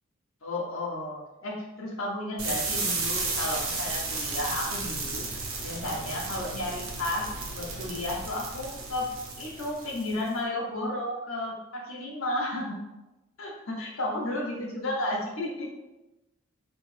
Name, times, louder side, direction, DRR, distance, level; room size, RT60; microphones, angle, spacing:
voice 1, 0.4-5.3 5.6-9.1 9.4-12.9 13.4-15.7, left 1 dB, 90° left, -2 dB, 0.9 m, -33 dB
sound 1, 2.4-10.3, right 3 dB, 85° right, 0.8 m, -33 dB
3.2 x 2.7 x 3.3 m, 1.0 s
head